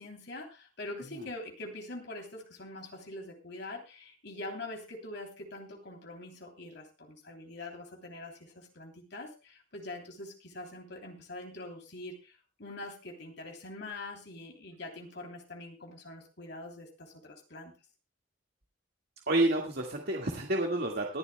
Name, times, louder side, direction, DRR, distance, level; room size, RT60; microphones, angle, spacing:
voice 1, 0.0-17.7, left 2 dB, 65° left, 3 dB, 3.0 m, -44 dB
voice 2, 19.3-21.2, right 2 dB, 60° right, 1 dB, 1.8 m, -29 dB
23.0 x 11.0 x 2.2 m, 0.29 s
head